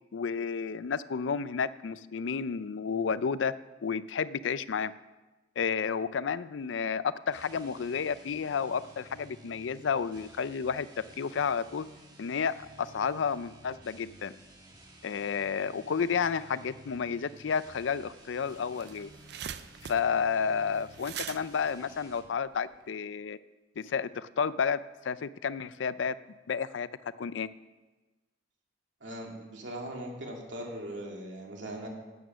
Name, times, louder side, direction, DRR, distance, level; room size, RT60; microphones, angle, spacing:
voice 1, 0.1-3.5 3.8-4.9 5.6-11.9 12.2-14.3 15.0-19.1 19.8-23.4 23.8-24.8 25.0-26.1 26.5-26.9 27.2-27.5, left 6 dB, 80° left, 16 dB, 0.4 m, -31 dB
sound 1, 7.2-22.4, right 1 dB, 20° right, 1.5 m, -54 dB
sound 2, 18.2-18.3 18.6-22.8, right 9 dB, 60° right, 0.5 m, -43 dB
voice 2, 29.0-31.9, right 1 dB, 80° right, 0 dB, 2.5 m, -40 dB
12.5 x 9.0 x 6.1 m, 1.2 s
head